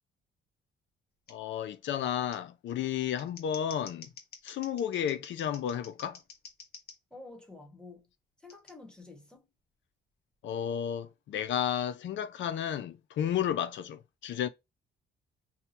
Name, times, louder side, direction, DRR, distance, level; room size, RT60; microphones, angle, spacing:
voice 1, 1.3-4.1 4.4-6.2 10.4-14.5, left 9 dB, 70° left, 0.5 m, -32 dB
Scissors, 1.3-1.4 2.3-2.4 3.0-7.0 8.5-8.7, left 5 dB, 50° left, 1.0 m, -50 dB
voice 2, 7.1-8.1 8.4-9.5, left 3 dB, 5° left, 1.2 m, -49 dB
2.8 x 2.2 x 4.1 m
cardioid pair, 90°, 20 cm